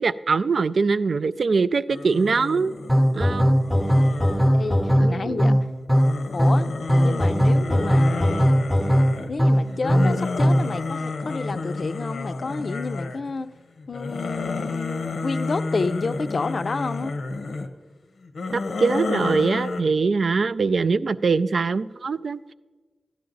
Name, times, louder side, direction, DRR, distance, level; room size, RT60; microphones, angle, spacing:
voice 1, 0.0-2.7 3.1-3.6 5.0-5.6 18.5-22.4, right 4 dB, 65° right, 15 dB, 0.3 m, -23 dB
sound 1, 1.9-5.3 5.9-13.4 13.8-17.7 18.2-19.8, left 3 dB, 90° left, 0.8 m, -31 dB
sound 2, 2.9-10.8, equal, ahead, 0.6 m, -19 dB
voice 2, 4.5-5.5 6.3-6.7 7.0-8.5 9.3-13.5 13.9-17.1, left 3 dB, 55° left, 11 dB, 0.4 m, -30 dB
12.5 x 10.5 x 3.9 m, 1.3 s
wide cardioid pair, 90°, 0 cm